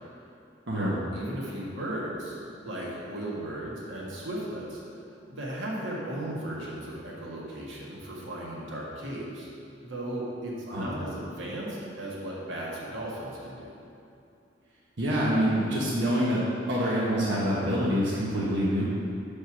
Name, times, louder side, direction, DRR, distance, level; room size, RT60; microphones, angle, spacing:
voice 1, 0.7-4.8 5.3-9.5 9.8-13.7, right 1 dB, 90° right, -4 dB, 1.7 m, -36 dB
voice 2, 15.0-16.4 16.7-18.8, equal, 65° right, -7 dB, 1.2 m, -26 dB
6.6 x 5.4 x 6.1 m, 2.6 s
head